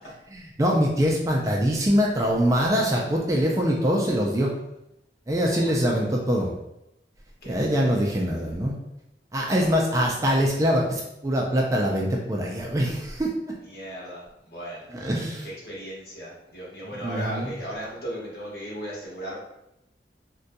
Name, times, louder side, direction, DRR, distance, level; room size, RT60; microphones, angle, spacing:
voice 1, 0.3-4.5 5.3-6.5 7.5-8.7 9.3-13.3 15.0-15.5 17.0-17.5, equal, 20° right, -1 dB, 0.4 m, -23 dB
voice 2, 2.9-4.2 5.5-6.3 7.4-8.5 9.5-9.8 13.5-19.4, equal, 55° left, -5 dB, 1.1 m, -38 dB
3.9 x 2.2 x 2.6 m, 0.85 s
head